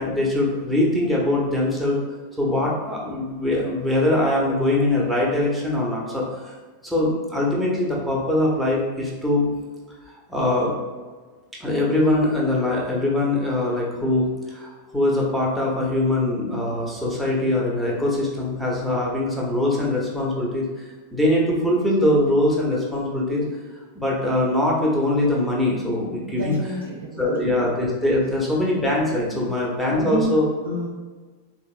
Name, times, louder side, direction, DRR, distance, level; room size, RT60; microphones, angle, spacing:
voice 1, 0.0-2.0 2.4-6.5 6.8-9.5 10.1-10.8 11.6-23.4 23.9-26.5 27.2-30.5, left 1 dB, ahead, -4 dB, 0.8 m, -22 dB
voice 2, 26.3-27.6 29.1-29.5 29.9-30.3 30.6-30.9, right 1 dB, 80° right, -4 dB, 0.5 m, -30 dB
3.3 x 2.7 x 2.4 m, 1.4 s
figure-of-eight pair, 90°, 0 cm